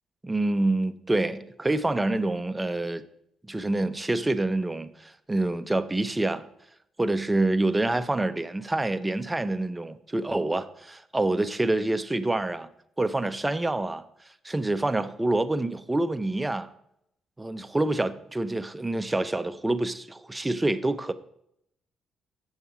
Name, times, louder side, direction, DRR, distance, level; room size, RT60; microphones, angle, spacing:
voice 1, 0.2-3.0 3.4-6.4 7.0-12.7 13.0-14.0 14.4-16.7 17.4-21.1, right 2 dB, 15° right, 0.5 m, -27 dB
7.2 x 6.9 x 4.8 m
cardioid pair, 90°, 0 cm